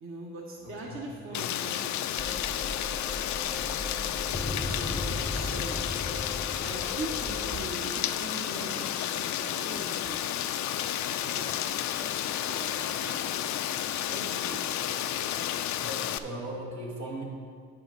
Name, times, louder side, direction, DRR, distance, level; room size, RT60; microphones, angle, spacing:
voice 1, 0.0-3.8 4.5-5.8 6.6-10.2 11.2-13.2 14.1-14.6, right 2 dB, 45° right, -3 dB, 1.3 m, -42 dB
voice 2, 0.6-1.0 1.3-1.5 15.8-17.2, right 1 dB, 70° right, -2 dB, 1.9 m, -38 dB
Rain, 1.3-16.2, left 11 dB, 70° left, 0.5 m, -31 dB
sound 1, 2.2-7.5, left 1 dB, 10° left, 0.7 m, -36 dB
9.3 x 6.0 x 5.2 m, 2.1 s
cardioid pair, 90°, 30 cm